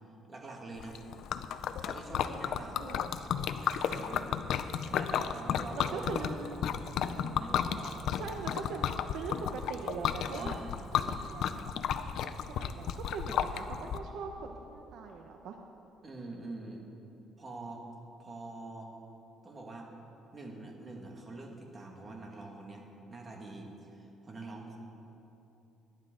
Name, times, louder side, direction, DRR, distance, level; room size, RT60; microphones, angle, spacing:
voice 1, 0.3-1.0 1.8-2.9 3.6-6.3 6.6-6.7 7.0-8.6 10.3-11.4 16.0-16.9 17.4-17.8 18.2-18.9 19.4-19.9 20.3-24.8, right 2 dB, 30° right, 0 dB, 2.0 m, -45 dB
Liquid, 0.8-14.0, left 8 dB, 65° left, 0.6 m, -33 dB
voice 2, 2.7-3.1 5.8-6.6 8.2-10.6 10.9-11.6 12.0-15.6, right 5 dB, 70° right, 3 dB, 0.9 m, -41 dB
20.0 x 11.0 x 3.9 m, 2.9 s
cardioid pair, 130°, 0 cm